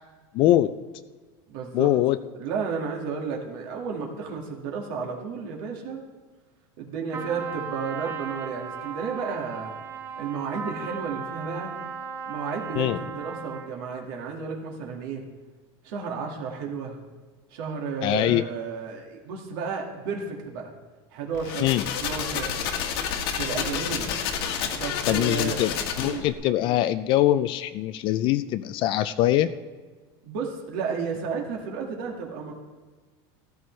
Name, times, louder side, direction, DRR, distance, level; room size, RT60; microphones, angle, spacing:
voice 1, 0.3-0.7 1.7-2.2 12.8-13.0 18.0-18.4 21.6-21.9 25.1-29.5, left 13 dB, 40° left, 13 dB, 0.4 m, -23 dB
voice 2, 1.5-1.9 2.3-6.0 6.8-9.8 10.2-11.7 12.2-15.2 15.8-17.0 17.5-20.7 21.1-21.7 22.0-22.6 23.4-24.1 24.7-25.6 26.0-26.3 30.2-32.5, right 5 dB, 70° right, 0 dB, 1.9 m, -32 dB
Trumpet, 7.1-13.8, right 6 dB, 20° right, 0.8 m, -36 dB
sound 1, 21.3-26.3, left 7 dB, 80° left, 1.6 m, -29 dB
14.0 x 14.0 x 3.2 m, 1.4 s
supercardioid pair, 160°, 13 cm